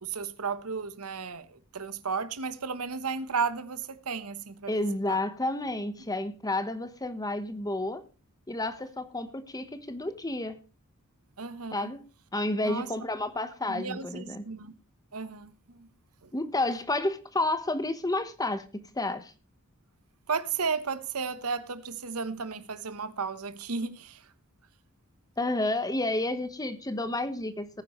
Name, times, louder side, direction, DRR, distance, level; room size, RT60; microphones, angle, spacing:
voice 1, 0.0-4.7 5.1-5.2 11.4-11.9 12.6-12.9 13.7-14.7 15.1-15.9 16.2-16.3 20.3-24.2, right 5 dB, 80° right, 1.1 m, -34 dB
voice 2, 4.7-8.0 8.5-10.6 11.7-12.0 12.3-14.4 16.3-19.3 25.4-27.8, left 2 dB, 15° left, 1.2 m, -30 dB
19.0 x 9.7 x 3.1 m
head